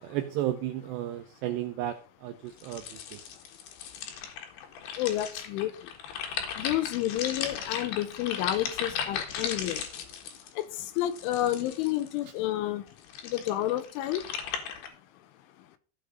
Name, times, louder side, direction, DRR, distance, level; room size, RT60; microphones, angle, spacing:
voice 1, 0.0-3.2, right 13 dB, 85° right, 2.4 m, -33 dB
sound 1, 2.6-12.2 12.9-14.9, left 8 dB, 65° left, 3.2 m, -37 dB
voice 2, 5.0-5.7 6.6-9.9 10.6-10.7 11.0-12.8 13.2-14.2, left 13 dB, 80° left, 3.3 m, -30 dB
15.0 x 5.1 x 5.2 m
omnidirectional pair, 5.7 m